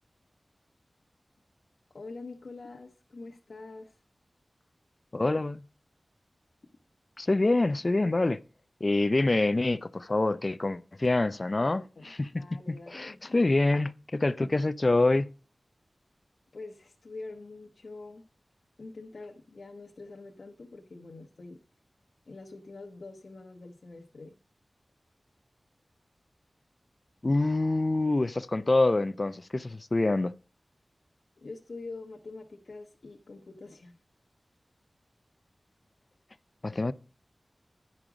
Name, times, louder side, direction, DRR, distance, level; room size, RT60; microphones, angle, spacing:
voice 1, 1.9-4.0 11.6-13.4 16.5-18.2 18.8-21.6 22.3-24.3 31.4-34.0, left 3 dB, 75° left, 0.9 m, -45 dB
voice 2, 5.1-5.6 7.2-8.4 8.8-12.4 12.9-15.3 27.2-30.3 36.6-36.9, left 2 dB, 40° left, 0.4 m, -26 dB
10.5 x 5.0 x 4.8 m
wide cardioid pair, 75°, 0 cm